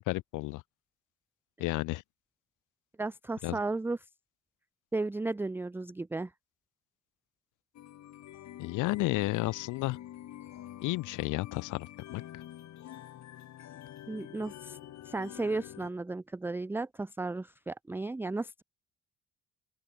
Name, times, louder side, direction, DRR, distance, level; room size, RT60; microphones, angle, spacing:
voice 1, 0.1-0.6 1.6-2.0 3.4-3.6 8.6-10.0 10.8-12.2, left 20 dB, 90° left, 0.5 m, -32 dB
voice 2, 3.0-4.0 4.9-6.3 14.1-14.8 15.0-18.6, right 3 dB, 5° right, 0.4 m, -34 dB
sound 1, 7.7-15.9, left 12 dB, 65° left, 1.2 m, -47 dB
open air
cardioid pair, 90°, 30 cm